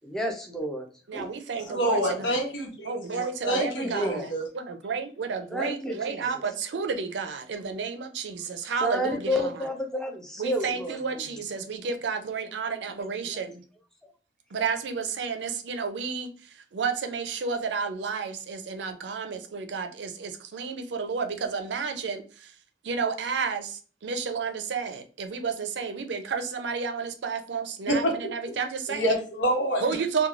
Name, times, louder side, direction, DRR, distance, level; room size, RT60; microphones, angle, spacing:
voice 1, 0.0-0.9 1.1-1.3 1.6-2.2 3.5-4.3 5.5-6.4 8.8-11.2 11.8-11.9 12.9-13.5, equal, 5° left, 2 dB, 0.4 m, -32 dB
voice 2, 1.1-2.4 2.8-9.5 10.4-13.6 14.5-22.5 22.8-29.2 29.8-30.3, right 5 dB, 80° right, 7 dB, 0.4 m, -31 dB
voice 3, 1.7-4.4 27.9-28.2 28.9-29.8, equal, 90° left, 1 dB, 1.0 m, -27 dB
3.0 x 2.2 x 2.4 m, 0.38 s
head